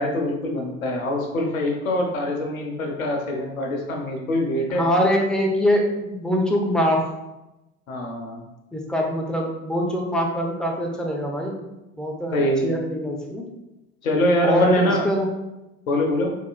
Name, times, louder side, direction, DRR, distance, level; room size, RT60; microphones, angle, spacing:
voice 1, 0.0-4.8 7.9-8.4 12.3-12.7 14.0-15.0 15.9-16.3, left 1 dB, 85° left, 1 dB, 0.7 m, -24 dB
voice 2, 4.7-7.0 8.7-11.5 12.0-13.5 14.4-15.3, equal, ahead, -1 dB, 0.7 m, -23 dB
3.9 x 2.9 x 2.3 m, 0.97 s
figure-of-eight pair, 65°, 40 cm